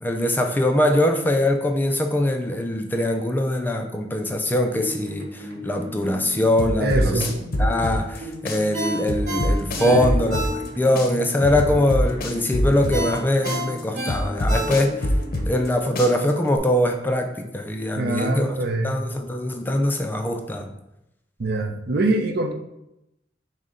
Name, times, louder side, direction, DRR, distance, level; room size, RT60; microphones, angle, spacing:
voice 1, 0.0-7.3 7.6-15.1 15.4-18.6 18.8-20.7, left 1 dB, 10° left, 4 dB, 0.3 m, -22 dB
sound 1, 4.7-15.6, equal, 80° right, 0.9 m, -37 dB
sound 2, 6.6-8.2 8.5-10.7 11.0-13.2 13.5-15.7 16.0-16.6, left 1 dB, 55° left, 0.6 m, -24 dB
voice 2, 6.8-7.3 9.8-10.0 18.0-19.0 21.4-22.5, right 2 dB, 60° right, 4 dB, 0.6 m, -24 dB
Ringtone, 8.7-11.0 11.4-11.5 12.9-15.2 15.5-15.7, right 1 dB, 45° right, 1.5 m, -30 dB
6.3 x 2.1 x 3.7 m, 0.86 s
head